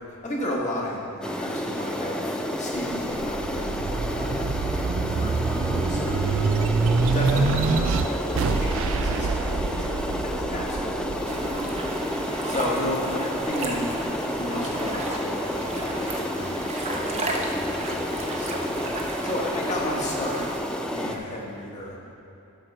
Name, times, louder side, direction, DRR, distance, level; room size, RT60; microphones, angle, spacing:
voice 1, 0.2-6.6 7.1-9.8 10.2-13.9 14.4-20.5 20.9-22.0, left 1 dB, 35° left, -3 dB, 1.5 m, -34 dB
sound 1, 1.2-21.2, left 1 dB, 5° left, 0.4 m, -30 dB
sound 2, 2.8-13.6 14.1-15.2, right 4 dB, 65° right, 0.5 m, -26 dB
sound 3, 11.2-20.6, right 2 dB, 30° right, 0.9 m, -35 dB
11.5 x 4.5 x 6.6 m, 2.7 s
head